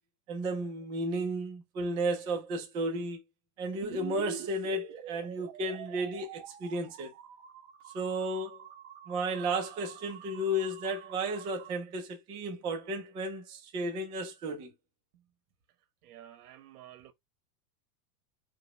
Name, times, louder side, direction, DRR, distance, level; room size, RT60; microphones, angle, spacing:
voice 1, 0.3-3.2 3.6-7.1 7.9-8.6 9.1-14.7, right 1 dB, 10° right, 0.3 m, -33 dB
sound 1, 3.8-11.7, right 10 dB, 50° right, 1.3 m, -47 dB
voice 2, 16.0-17.1, right 12 dB, 80° right, 1.3 m, -51 dB
4.8 x 2.1 x 4.1 m
supercardioid pair, 160°, 45 cm